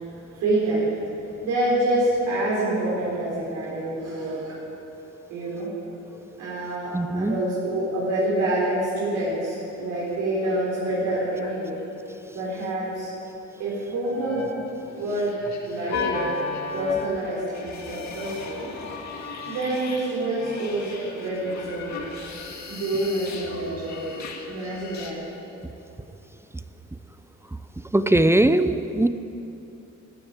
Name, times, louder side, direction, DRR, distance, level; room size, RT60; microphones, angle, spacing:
voice 1, 0.1-1.1 1.4-4.6 5.3-5.7 6.4-11.7 12.3-13.1 13.6-14.4 15.0-15.4 15.7-16.3 16.7-18.7 19.5-22.3 22.7-24.2 24.5-25.2, right 1 dB, 90° right, -7 dB, 3.8 m, -27 dB
voice 2, 6.9-7.4 27.9-29.1, right 1 dB, 10° right, 11 dB, 0.6 m, -20 dB
sound 1, 8.9-9.4 9.7-9.8 10.0-11.9 13.9-25.1, left 4 dB, 65° left, 2.2 m, -36 dB
14.0 x 9.7 x 8.9 m, 2.9 s
cardioid pair, 90°, 30 cm